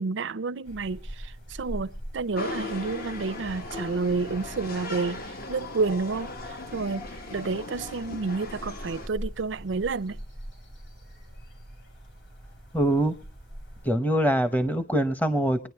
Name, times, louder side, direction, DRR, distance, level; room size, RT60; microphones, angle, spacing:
voice 1, 0.0-7.0 7.3-10.2, right 4 dB, 85° right, 0.6 m, -30 dB
sound 1, 0.6-13.9, equal, 70° left, 5.1 m, -43 dB
sound 2, 2.3-9.1, left 2 dB, 55° left, 1.2 m, -38 dB
voice 2, 12.7-13.1 13.8-15.7, right 1 dB, 10° left, 0.8 m, -23 dB
25.5 x 10.0 x 3.5 m
head